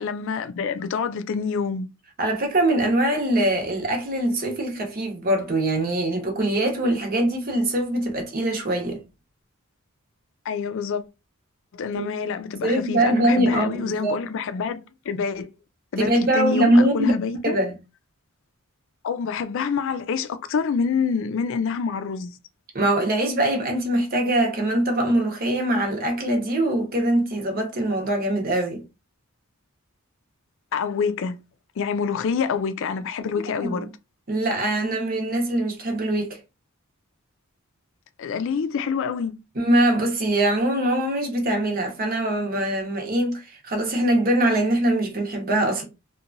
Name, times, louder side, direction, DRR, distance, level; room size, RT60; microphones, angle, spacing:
voice 1, 0.0-1.9 10.5-11.0 11.7-14.8 15.1-15.5 15.9-17.6 19.0-22.4 30.7-31.3 31.8-33.9 38.2-39.3, left 6 dB, 60° left, 0.4 m, -26 dB
voice 2, 2.2-9.0 11.9-12.1 12.6-14.2 16.0-17.1 17.4-17.8 22.7-28.8 33.6-33.9 34.3-36.4 39.5-45.8, right 1 dB, 45° right, 0.8 m, -22 dB
2.8 x 2.2 x 2.5 m
head